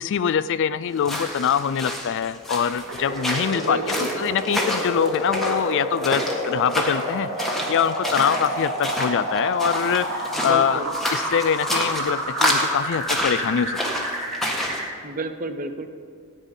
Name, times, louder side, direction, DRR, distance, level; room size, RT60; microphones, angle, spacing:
voice 1, 0.0-10.8 11.1-14.1, left 8 dB, 55° left, 15 dB, 0.3 m, -24 dB
sound 1, 1.0-14.8, left 1 dB, ahead, 1.5 m, -29 dB
sound 2, 2.9-14.9, right 1 dB, 60° right, 2.7 m, -30 dB
voice 2, 3.5-4.1 10.3-10.9 15.0-15.9, right 3 dB, 40° right, 9 dB, 0.8 m, -31 dB
14.5 x 9.0 x 5.3 m, 2.2 s
head